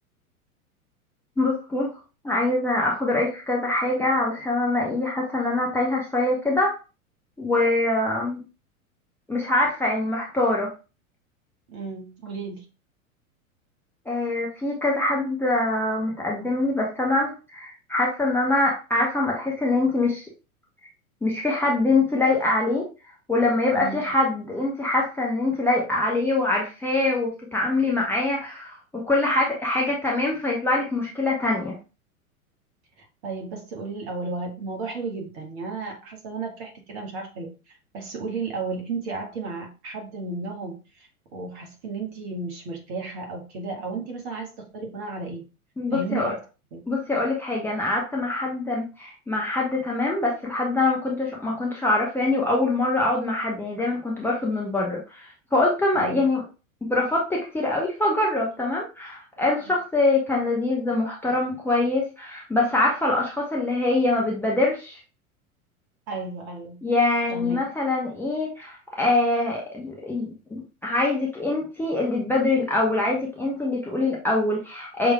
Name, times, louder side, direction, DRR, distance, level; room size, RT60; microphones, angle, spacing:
voice 1, 1.4-1.9 2.2-6.7 7.4-8.4 9.3-10.7 14.1-20.2 21.2-22.8 23.3-31.8 45.8-46.3 46.9-56.4 56.9-65.0 66.8-75.1, left 2 dB, 5° left, -3 dB, 0.7 m, -24 dB
voice 2, 11.7-12.6 23.7-24.0 33.0-45.4 45.9-46.4 46.7-46.8 55.9-56.2 59.6-59.7 66.1-66.8 67.3-67.6, right 3 dB, 45° right, 1 dB, 1.6 m, -34 dB
6.0 x 3.1 x 2.2 m, 0.32 s
figure-of-eight pair, 90°, 43 cm